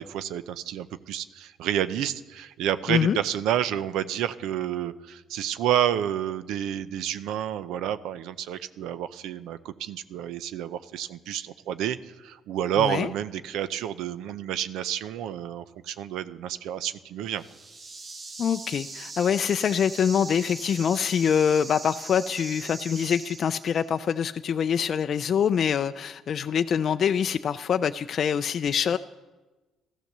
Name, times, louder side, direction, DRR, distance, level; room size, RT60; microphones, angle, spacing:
voice 1, 0.0-17.4, right 10 dB, 80° right, 14 dB, 0.6 m, -29 dB
voice 2, 12.8-13.1 18.4-29.0, left 7 dB, 55° left, 9 dB, 0.4 m, -25 dB
sound 1, 17.3-24.0, right 3 dB, 40° right, 1.5 m, -40 dB
14.5 x 13.5 x 6.6 m, 1.2 s
supercardioid pair, 75°, 0 cm